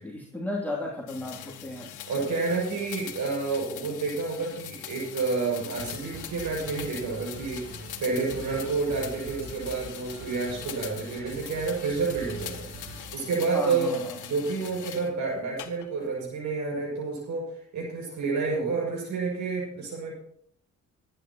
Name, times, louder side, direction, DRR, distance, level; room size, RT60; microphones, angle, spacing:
voice 1, 0.0-1.9 13.5-14.2, left 1 dB, 5° left, -4 dB, 2.8 m, -34 dB
sound 1, 1.1-15.1 15.6-16.1, left 10 dB, 80° left, 1.5 m, -42 dB
voice 2, 2.1-20.1, right 4 dB, 75° right, -2 dB, 6.1 m, -29 dB
sound 2, 5.8-13.1, right 3 dB, 45° right, 3.2 m, -44 dB
24.5 x 9.9 x 3.0 m, 0.67 s
cardioid pair, 90°, 30 cm